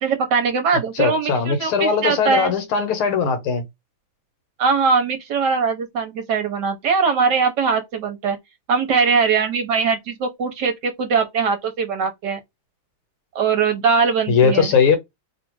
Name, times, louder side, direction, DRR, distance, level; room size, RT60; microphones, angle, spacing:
voice 1, 0.0-2.5 4.6-8.4 8.7-12.4 13.3-14.7, right 5 dB, 65° right, 1.3 m, -21 dB
voice 2, 1.0-3.6 14.3-15.0, left 6 dB, 80° left, 2.0 m, -19 dB
3.9 x 2.5 x 4.5 m
omnidirectional pair, 2.3 m